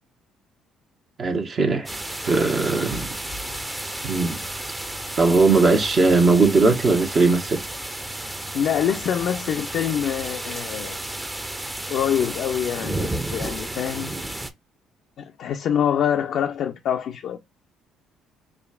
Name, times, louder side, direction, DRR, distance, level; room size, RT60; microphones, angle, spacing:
voice 1, 1.2-1.9 2.2-3.1 4.0-4.4 5.2-7.6, right 3 dB, 50° right, 0.9 m, -19 dB
sound 1, 1.9-14.5, right 1 dB, 15° right, 0.7 m, -32 dB
voice 2, 8.5-11.0 11.9-14.1 15.2-17.4, left 9 dB, 65° left, 0.5 m, -25 dB
4.8 x 2.4 x 2.3 m
hypercardioid pair, 55°, 0 cm